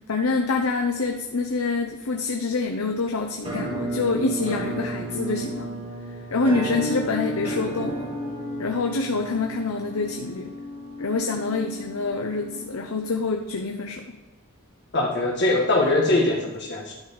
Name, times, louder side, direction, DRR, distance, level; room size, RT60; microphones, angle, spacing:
voice 1, 0.1-5.7 6.3-8.1 8.6-10.5 11.0-14.0, left 3 dB, 80° left, 3 dB, 0.8 m, -26 dB
Musical instrument, 3.4-13.2, right 1 dB, 25° right, 3.2 m, -33 dB
voice 2, 14.9-16.9, left 2 dB, 50° left, -1 dB, 1.7 m, -22 dB
11.5 x 5.4 x 5.0 m, 1.1 s
head